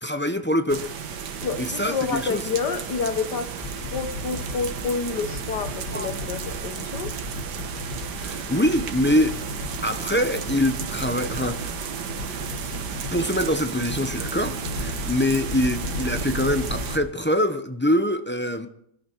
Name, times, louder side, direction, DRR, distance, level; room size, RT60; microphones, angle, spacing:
voice 1, 0.0-0.9 1.6-2.4 5.9-6.1 8.2-9.4 9.8-11.7 13.1-18.7, left 1 dB, 15° left, 0.4 m, -24 dB
sound 1, 0.7-17.0, right 7 dB, 80° right, 1.7 m, -33 dB
voice 2, 1.4-7.2, left 5 dB, 80° left, 1.8 m, -29 dB
sound 2, 3.6-17.0, left 2 dB, 60° left, 2.4 m, -36 dB
23.0 x 12.0 x 4.6 m
omnidirectional pair, 1.8 m